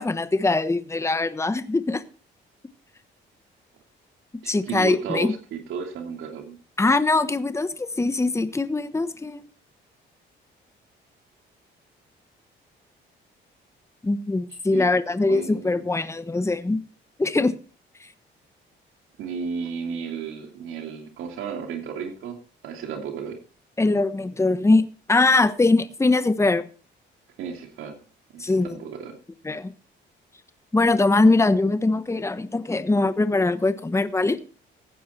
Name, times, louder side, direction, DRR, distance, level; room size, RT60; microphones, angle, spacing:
voice 1, 0.0-2.0 4.5-5.3 6.8-9.4 14.0-16.8 17.2-17.5 18.0-18.1 23.8-24.8 25.1-26.6 28.4-28.8 29.4-29.7 30.7-34.4, left 2 dB, 15° left, 1.1 m, -22 dB
voice 2, 4.4-6.6 14.7-14.9 15.3-15.9 19.2-22.4 22.6-23.4 27.4-27.9 28.3-28.4 28.7-29.2, right 6 dB, 85° right, 2.8 m, -33 dB
16.0 x 9.3 x 4.4 m
cardioid pair, 90°, 20 cm